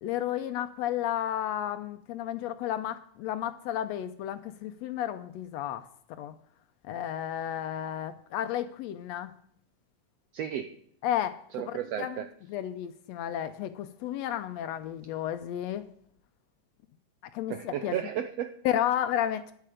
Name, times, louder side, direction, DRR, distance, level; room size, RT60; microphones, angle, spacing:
voice 1, 0.0-6.3 6.9-9.3 11.0-15.9 17.3-17.9 18.6-19.5, left 11 dB, 80° left, 11 dB, 1.5 m, -32 dB
voice 2, 10.3-10.7 11.5-12.3 17.5-18.6, right 10 dB, 80° right, 9 dB, 1.5 m, -33 dB
11.5 x 10.5 x 5.0 m, 0.64 s
omnidirectional pair, 3.6 m